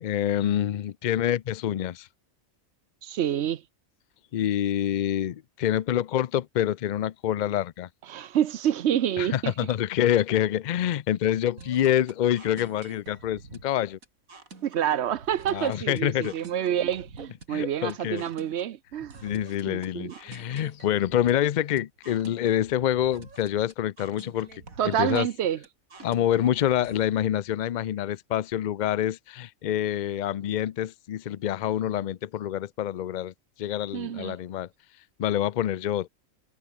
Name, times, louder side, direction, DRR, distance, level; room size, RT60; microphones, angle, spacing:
voice 1, 0.0-2.1 4.3-7.9 9.2-14.0 15.5-16.3 17.5-18.2 19.2-25.3 26.0-33.3 33.6-34.7 35.2-36.1, left 11 dB, 85° left, 0.4 m, -26 dB
voice 2, 3.0-3.6 8.1-9.5 14.6-19.2 19.7-20.2 24.8-25.6 33.9-34.4, right 10 dB, 60° right, 0.9 m, -28 dB
sound 1, 11.6-27.1, right 4 dB, 85° right, 3.5 m, -48 dB
omnidirectional pair, 1.4 m